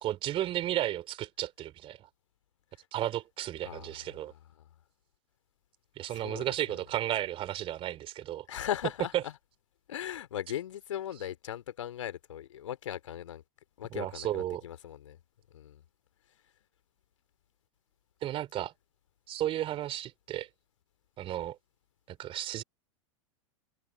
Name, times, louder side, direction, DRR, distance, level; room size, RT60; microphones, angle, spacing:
voice 1, 0.0-2.1 2.9-4.3 6.0-8.5 13.9-14.6 18.2-18.7 19.3-20.5 21.2-21.6 22.1-22.6, right 13 dB, 30° right, 2.9 m, -34 dB
voice 2, 3.6-4.7 6.1-6.8 8.5-9.3 9.9-13.4 13.8-15.2 15.5-15.8 16.3-16.4, left 11 dB, 65° left, 2.5 m, -39 dB
figure-of-eight pair, 90°, 17 cm